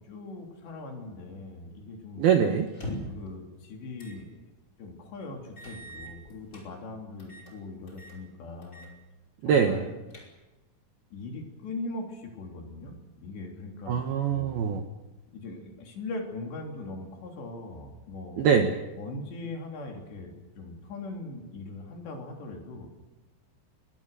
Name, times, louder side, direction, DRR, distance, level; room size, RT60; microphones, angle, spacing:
voice 1, 0.1-2.3 3.1-4.3 4.8-8.9 9.5-9.9 11.1-14.6 15.3-18.4 19.0-22.9, left 2 dB, 60° left, 1 dB, 5.4 m, -40 dB
voice 2, 2.2-2.7 9.4-9.8 13.9-14.8 18.4-18.7, right 7 dB, 70° right, 5 dB, 2.4 m, -23 dB
sound 1, 2.7-3.3 4.0-4.2 4.6-4.7 5.6-6.7 7.2-7.5 7.9-8.2 8.6-8.9 9.2-9.3 9.8-10.6, left 1 dB, 15° left, 4.9 m, -41 dB
26.0 x 21.5 x 6.8 m, 1.1 s
omnidirectional pair, 6.0 m